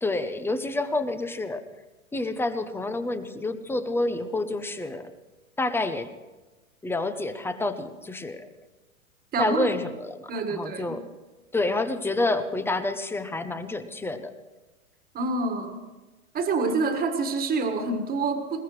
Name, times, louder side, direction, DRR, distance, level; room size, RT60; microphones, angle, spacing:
voice 1, 0.0-1.6 2.1-5.1 5.6-6.1 6.8-8.5 9.4-11.1 11.5-14.3, left 2 dB, 5° left, 10 dB, 0.7 m, -28 dB
voice 2, 9.3-9.7 10.3-11.0 15.1-15.8 16.3-18.6, right 3 dB, 20° right, 6 dB, 1.7 m, -27 dB
21.0 x 20.5 x 3.2 m, 1.2 s
hypercardioid pair, 115°, 42 cm